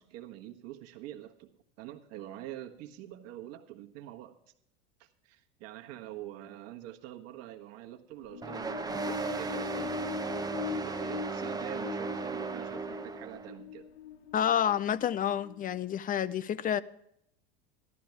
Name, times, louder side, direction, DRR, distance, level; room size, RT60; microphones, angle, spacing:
voice 1, 0.0-1.5 1.8-4.4 5.0-10.3 10.6-13.9, right 13 dB, 50° right, 1.4 m, -45 dB
sound 1, 8.1-15.8, left 9 dB, 90° left, 0.6 m, -42 dB
sound 2, 8.4-13.5, right 4 dB, 10° right, 0.9 m, -36 dB
voice 2, 14.3-16.8, left 9 dB, 25° left, 0.5 m, -29 dB
14.5 x 12.5 x 3.4 m
hypercardioid pair, 85°, 31 cm